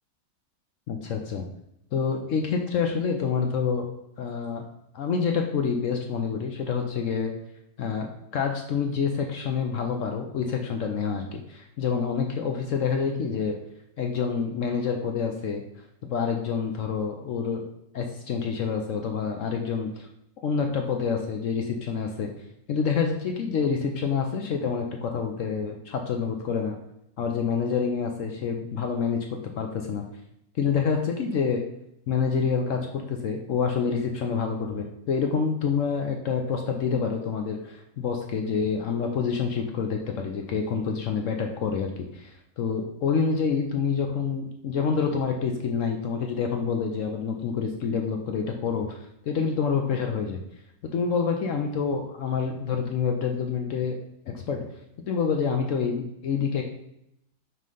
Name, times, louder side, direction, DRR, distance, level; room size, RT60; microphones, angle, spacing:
voice 1, 0.9-1.4 1.9-3.9 4.2-4.6 4.9-7.3 7.8-8.1 8.3-13.6 14.0-15.6 16.0-17.7 17.9-20.1 20.4-22.3 22.7-26.8 27.2-30.0 30.5-31.6 32.1-50.4 50.8-54.0 54.3-54.6 55.1-56.6, left 6 dB, 70° left, 3 dB, 0.7 m, -27 dB
5.8 x 3.1 x 5.3 m, 0.80 s
omnidirectional pair, 1.9 m